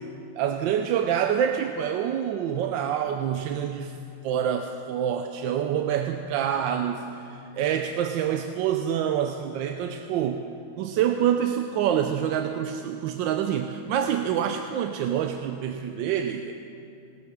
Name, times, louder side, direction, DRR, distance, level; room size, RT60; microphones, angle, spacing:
voice 1, 0.4-3.9 4.2-10.4 10.8-16.5, right 9 dB, 75° right, 6 dB, 1.2 m, -26 dB
19.0 x 7.2 x 6.4 m, 2.6 s
omnidirectional pair, 2.3 m